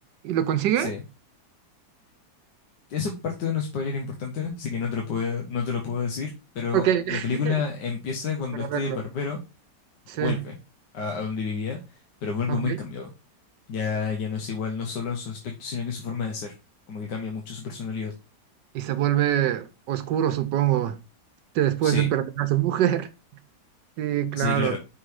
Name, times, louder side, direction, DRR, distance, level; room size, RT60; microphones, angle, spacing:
voice 1, 0.2-0.9 6.7-7.5 8.6-9.0 10.1-10.4 12.5-12.8 18.7-21.0 21.5-23.1 24.0-24.8, right 11 dB, 85° right, 1.4 m, -24 dB
voice 2, 2.9-9.4 10.2-10.6 10.9-11.8 12.2-13.1 13.7-16.5 16.9-18.1 21.8-22.1 24.4-24.8, left 5 dB, 75° left, 1.6 m, -30 dB
5.8 x 3.8 x 4.7 m
omnidirectional pair, 1.9 m